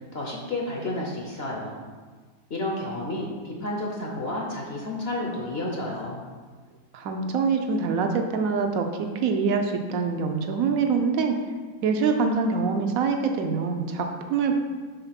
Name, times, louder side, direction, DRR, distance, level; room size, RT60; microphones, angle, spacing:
voice 1, 0.1-1.8 2.5-6.2, left 1 dB, 45° left, -2 dB, 0.8 m, -31 dB
voice 2, 6.9-11.4 11.8-14.6, right 5 dB, 65° right, 4 dB, 0.9 m, -25 dB
5.6 x 3.8 x 5.8 m, 1.4 s
omnidirectional pair, 1.9 m